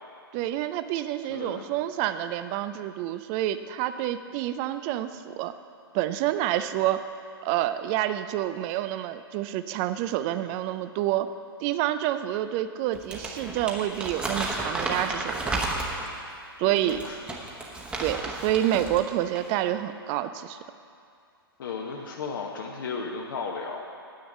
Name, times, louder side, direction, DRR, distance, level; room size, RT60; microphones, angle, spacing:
voice 1, 0.3-5.5 5.9-7.0 7.4-11.3 11.6-15.6 16.6-17.1 18.0-20.6, right 13 dB, 30° right, 11 dB, 0.4 m, -28 dB
voice 2, 1.3-1.7 10.3-10.4 16.6-17.2 21.6-23.8, left 5 dB, 55° left, 0 dB, 1.0 m, -35 dB
Crumpling crinkling, 12.9-16.2 16.8-19.0 19.3-19.5, right 2 dB, 10° right, 1.1 m, -32 dB
8.6 x 6.4 x 8.3 m, 2.4 s
figure-of-eight pair, 115°, 13 cm